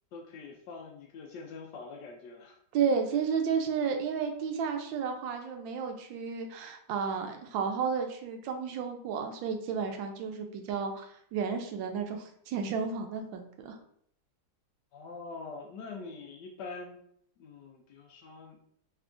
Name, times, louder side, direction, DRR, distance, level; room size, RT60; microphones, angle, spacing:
voice 1, 0.1-2.6 14.9-17.0 17.4-18.6, left 4 dB, 75° left, 2 dB, 1.1 m, -44 dB
voice 2, 2.7-13.8, right 6 dB, 80° right, 4 dB, 1.3 m, -32 dB
3.6 x 3.4 x 2.5 m, 0.66 s
omnidirectional pair, 2.1 m